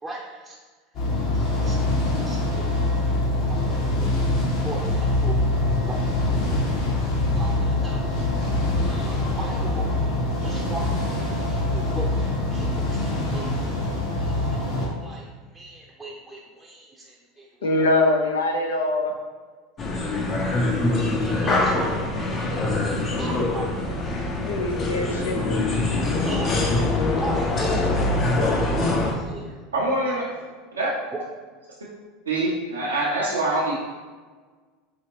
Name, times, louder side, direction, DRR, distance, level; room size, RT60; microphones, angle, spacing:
voice 1, 0.0-0.6 1.3-4.1 4.6-5.5 5.9-8.0 8.8-9.9 10.4-13.9 14.2-15.3 15.5-17.9 21.2-23.8 26.2-27.6 28.0-28.2 28.6-29.6 31.1-31.3, right 1 dB, 10° right, -3 dB, 0.6 m, -39 dB
sound 1, 0.9-14.9, left 2 dB, 55° left, 1.2 m, -24 dB
voice 2, 17.6-19.1 24.4-25.6, left 2 dB, 80° left, 3 dB, 0.5 m, -23 dB
sound 2, 19.8-29.1, left 2 dB, 35° left, 0.7 m, -24 dB
voice 3, 29.7-30.2 30.7-30.9 32.3-33.7, right 2 dB, 90° right, -6 dB, 0.7 m, -24 dB
4.8 x 2.9 x 2.9 m, 1.4 s
hypercardioid pair, 85°, 0 cm